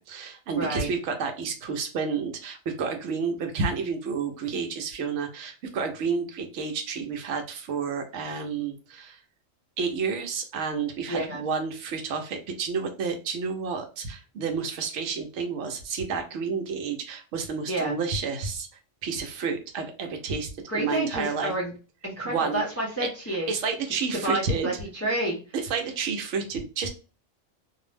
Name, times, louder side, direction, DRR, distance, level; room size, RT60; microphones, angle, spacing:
voice 1, 0.0-9.2 9.8-18.7 19.0-21.5 22.2-22.6 23.3-24.7 25.5-26.9, right 5 dB, 75° right, 4 dB, 0.9 m, -30 dB
voice 2, 0.6-0.9 11.1-11.4 17.7-17.9 20.7-21.7 22.0-23.5 24.1-25.4, right 1 dB, 20° left, -3 dB, 0.5 m, -29 dB
2.6 x 2.0 x 3.2 m, 0.34 s
omnidirectional pair, 1.3 m